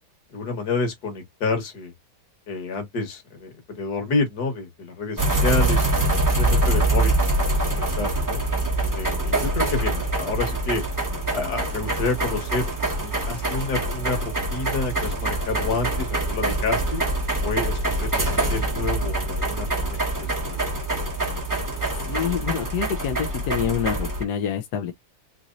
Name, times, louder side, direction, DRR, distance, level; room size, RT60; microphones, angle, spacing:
voice 1, 0.3-1.9 2.5-8.4 8.9-10.8 11.3-17.0 17.4-20.7, left 3 dB, 55° left, 1.8 m, -29 dB
sound 1, 5.2-24.2, right 2 dB, 20° right, 0.6 m, -24 dB
voice 2, 21.9-24.9, left 8 dB, 70° left, 1.0 m, -27 dB
4.0 x 2.9 x 2.5 m
omnidirectional pair, 2.2 m